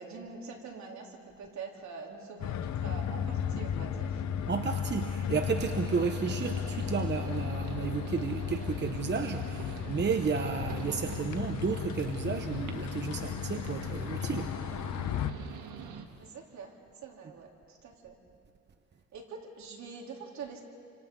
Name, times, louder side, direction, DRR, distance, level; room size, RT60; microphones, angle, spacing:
voice 1, 0.0-4.2 16.2-16.7 17.0-18.2 19.1-20.6, right 5 dB, 65° right, 0 dB, 3.6 m, -45 dB
sound 1, 2.4-15.3, left 8 dB, 70° left, 1.1 m, -35 dB
voice 2, 4.5-14.6, right 6 dB, 35° right, 6 dB, 1.0 m, -32 dB
sound 2, 5.5-16.0, right 7 dB, 85° right, 1.7 m, -45 dB
30.0 x 26.0 x 3.9 m, 2.3 s
cardioid pair, 90°, 30 cm